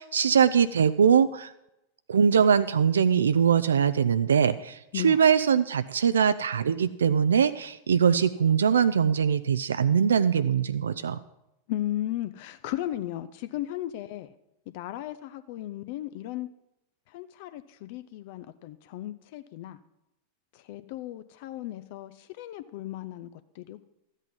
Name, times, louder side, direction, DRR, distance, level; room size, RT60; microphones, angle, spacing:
voice 1, 0.0-1.5 2.1-11.2, right 7 dB, 70° right, 13 dB, 0.3 m, -22 dB
voice 2, 11.7-14.3 14.7-16.5 17.1-19.8 20.5-23.8, left 13 dB, 50° left, 12 dB, 0.4 m, -35 dB
13.0 x 8.2 x 5.4 m, 0.87 s
figure-of-eight pair, 90°, 0 cm